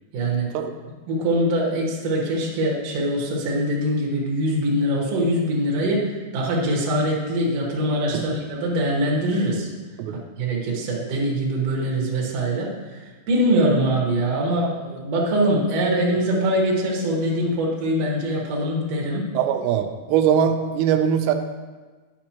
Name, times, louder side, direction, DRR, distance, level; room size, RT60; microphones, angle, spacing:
voice 1, 0.1-0.5 1.1-9.7 10.4-19.3, right 1 dB, 60° right, -3 dB, 1.7 m, -23 dB
voice 2, 19.3-21.4, right 8 dB, 90° right, 7 dB, 2.7 m, -21 dB
11.0 x 5.2 x 2.9 m, 1.3 s
omnidirectional pair, 4.9 m